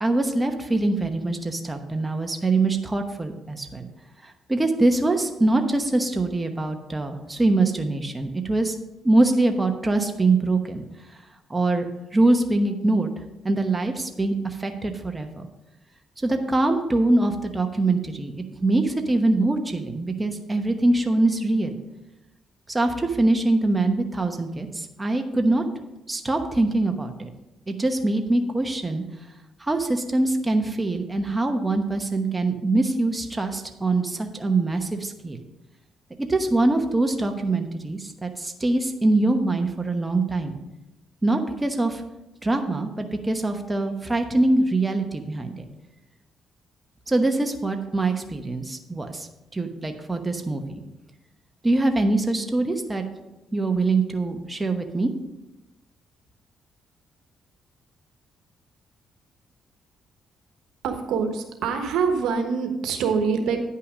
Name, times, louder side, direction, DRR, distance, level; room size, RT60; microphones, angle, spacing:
voice 1, 0.0-3.9 4.2-8.8 9.0-10.8 11.5-11.8 12.1-13.1 13.4-15.5 16.2-18.3 18.6-21.8 22.7-25.6 26.1-27.3 27.7-29.0 29.6-35.4 36.2-40.6 41.2-42.0 42.4-45.6 47.1-49.3 49.5-50.8 51.6-53.0 53.5-55.1, right 2 dB, 15° right, 4 dB, 1.0 m, -23 dB
voice 2, 60.8-63.6, right 5 dB, 80° right, 5 dB, 1.1 m, -25 dB
9.9 x 5.7 x 5.0 m, 0.98 s
cardioid pair, 90°, 0 cm